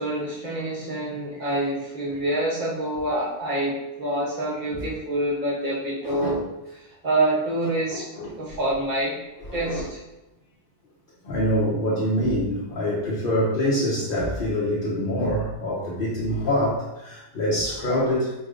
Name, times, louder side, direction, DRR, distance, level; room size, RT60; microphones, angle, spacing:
voice 1, 0.0-6.4 7.0-8.0 8.4-9.2 9.5-10.0, right 1 dB, 40° right, -5 dB, 1.3 m, -26 dB
voice 2, 6.0-6.4 7.9-8.3 9.5-9.8 11.2-18.3, equal, 50° left, -7 dB, 0.9 m, -25 dB
4.6 x 3.3 x 2.5 m, 0.98 s
omnidirectional pair, 1.3 m